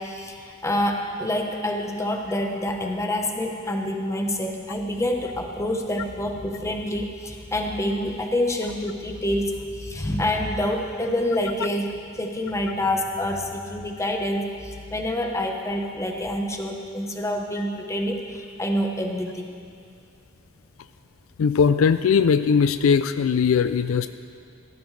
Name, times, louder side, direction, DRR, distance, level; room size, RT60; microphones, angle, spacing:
voice 1, 0.0-19.5, left 1 dB, 15° left, 2 dB, 1.0 m, -27 dB
voice 2, 21.4-24.1, left 6 dB, 70° left, 11 dB, 0.4 m, -19 dB
17.5 x 14.0 x 3.3 m, 2.4 s
head